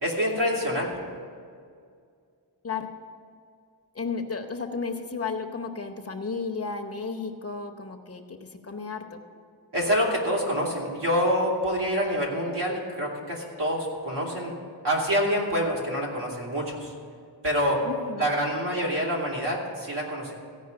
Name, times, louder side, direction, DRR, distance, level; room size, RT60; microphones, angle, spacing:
voice 1, 0.0-1.0 9.7-14.6 14.8-16.9 17.4-17.8 18.2-20.3, equal, 80° right, -3 dB, 3.1 m, -26 dB
voice 2, 2.6-3.0 3.9-9.2 17.8-18.3, left 4 dB, 35° left, 5 dB, 0.9 m, -33 dB
15.0 x 5.4 x 8.6 m, 2.2 s
wide cardioid pair, 130°, 41 cm